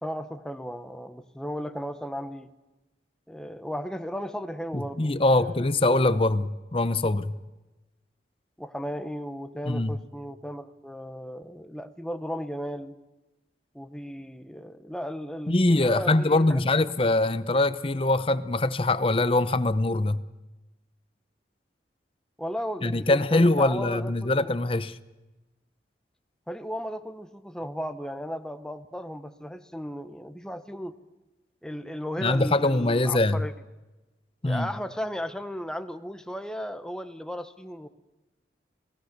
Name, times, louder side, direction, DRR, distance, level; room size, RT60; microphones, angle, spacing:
voice 1, 0.0-2.5 3.3-5.6 8.6-12.9 13.7-16.6 22.4-24.5 26.5-31.0 31.6-33.5 34.4-37.9, equal, 5° left, 1.0 m, -35 dB
voice 2, 4.7-7.4 9.6-10.0 15.5-20.2 22.8-25.0 32.2-33.5 34.4-34.7, left 2 dB, 30° left, 0.8 m, -23 dB
28.0 x 18.5 x 6.7 m
head